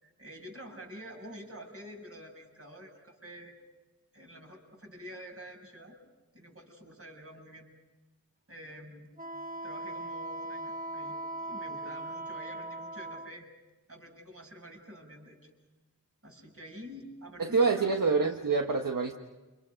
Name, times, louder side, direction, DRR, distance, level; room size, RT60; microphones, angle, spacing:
voice 1, 0.0-3.5 4.1-6.0 6.3-7.7 8.5-9.1 9.6-13.5 13.9-15.5 16.2-17.9, equal, 35° right, 0 dB, 7.1 m, -48 dB
Wind instrument woodwind instrument, 9.2-13.3, right 2 dB, 20° right, 1.0 m, -39 dB
voice 2, 17.4-19.1, right 4 dB, 60° right, 3 dB, 1.5 m, -26 dB
29.5 x 27.5 x 5.2 m, 1.2 s
wide cardioid pair, 75°, 37 cm